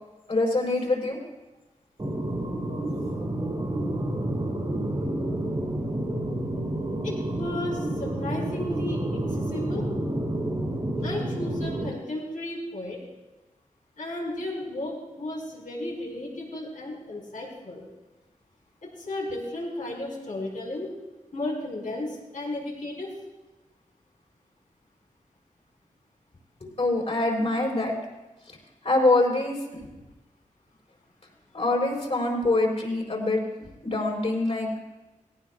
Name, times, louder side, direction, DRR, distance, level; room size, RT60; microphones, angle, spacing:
voice 1, 0.3-1.2 26.6-27.9 28.8-29.6 31.5-33.4 33.8-34.7, left 2 dB, 55° left, -2 dB, 4.3 m, -24 dB
sound 1, 2.0-11.9, right 1 dB, 35° right, 2.4 m, -29 dB
voice 2, 7.0-9.9 11.0-13.0 14.0-17.8 18.8-20.9 21.3-23.1, left 1 dB, 80° left, -3 dB, 5.3 m, -34 dB
19.0 x 18.0 x 2.4 m, 1.1 s
wide cardioid pair, 100°, 13 cm